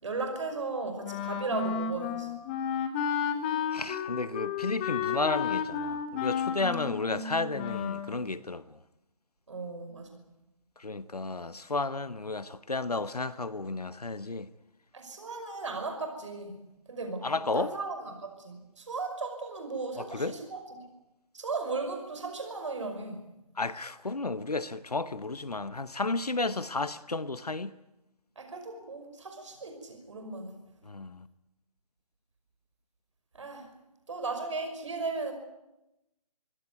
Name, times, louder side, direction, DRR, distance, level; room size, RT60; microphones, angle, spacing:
voice 1, 0.0-2.3 9.5-10.2 14.9-16.6 16.9-20.8 21.3-23.2 28.4-30.6 33.3-33.7 34.1-35.3, right 3 dB, 50° right, 5.6 m, -36 dB
Wind instrument woodwind instrument, 1.0-8.1, left 7 dB, 15° left, 1.5 m, -32 dB
voice 2, 3.7-8.6 10.8-14.5 17.2-17.7 20.0-20.4 23.6-27.7 30.9-31.2, left 3 dB, 75° left, 1.1 m, -32 dB
25.0 x 16.5 x 9.5 m
figure-of-eight pair, 150°, 20 cm